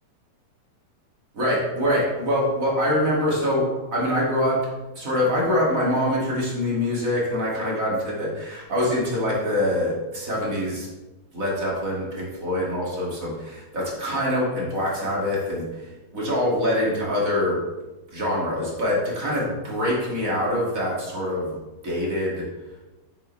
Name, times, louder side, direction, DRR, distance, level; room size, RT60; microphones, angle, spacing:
voice 1, 1.3-4.6 4.9-10.9 11.3-17.6 18.1-22.5, left 1 dB, 30° right, -4 dB, 1.8 m, -24 dB
9.2 x 8.8 x 3.2 m, 1.1 s
omnidirectional pair, 4.3 m